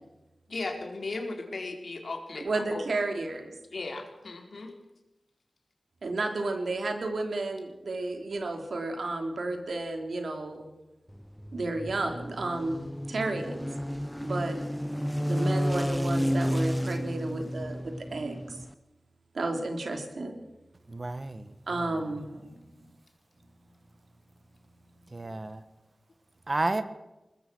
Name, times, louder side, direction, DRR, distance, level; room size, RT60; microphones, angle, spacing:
voice 1, 0.5-2.5 2.7-2.8 3.7-4.7, left 3 dB, 70° left, 3 dB, 4.3 m, -36 dB
voice 2, 2.4-3.6 6.0-10.7 11.5-13.7 14.2-14.6 15.3-18.6 19.3-20.4 21.7-22.7, right 2 dB, 80° right, 4 dB, 3.5 m, -32 dB
sound 1, 11.1-18.7, equal, 5° left, 0.7 m, -31 dB
voice 3, 20.9-22.1 25.1-25.6 26.5-26.8, right 2 dB, 40° right, 11 dB, 1.6 m, -32 dB
22.0 x 20.0 x 6.3 m, 0.99 s
wide cardioid pair, 90°, 0 cm